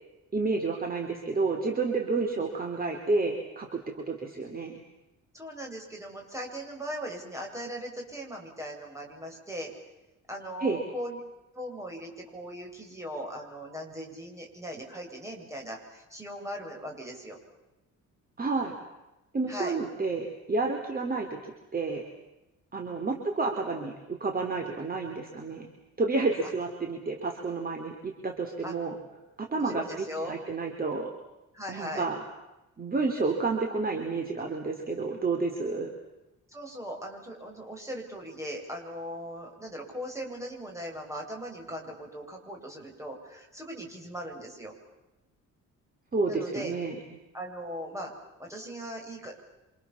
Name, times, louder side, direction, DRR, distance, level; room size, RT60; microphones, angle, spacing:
voice 1, 0.3-4.8 10.6-10.8 18.4-18.7 19.3-21.4 21.7-22.0 22.7-25.7 26.0-29.0 29.4-31.1 31.7-32.2 32.8-35.9 46.1-47.0, right 3 dB, 30° right, 3 dB, 3.6 m, -30 dB
voice 2, 5.3-9.7 10.3-11.2 11.5-17.4 19.5-19.7 26.4-26.5 28.6-28.7 29.6-30.4 31.5-32.1 36.5-44.7 46.3-46.7 47.3-48.1 48.4-49.5, equal, 10° right, 0 dB, 7.6 m, -39 dB
29.0 x 26.5 x 7.3 m, 1.0 s
cardioid pair, 125°, 31 cm